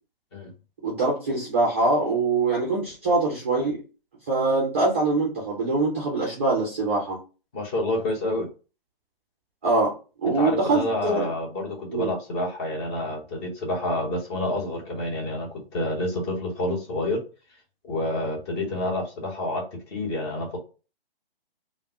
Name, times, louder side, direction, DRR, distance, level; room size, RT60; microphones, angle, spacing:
voice 1, 0.8-3.8 4.3-7.2 9.6-9.9 10.2-11.3 11.9-12.1, right 3 dB, 15° right, -4 dB, 0.3 m, -23 dB
voice 2, 7.5-8.5 10.4-17.2 17.8-20.6, left 1 dB, 30° left, 1 dB, 0.8 m, -28 dB
3.3 x 2.0 x 2.7 m, 0.33 s
figure-of-eight pair, 135°, 30 cm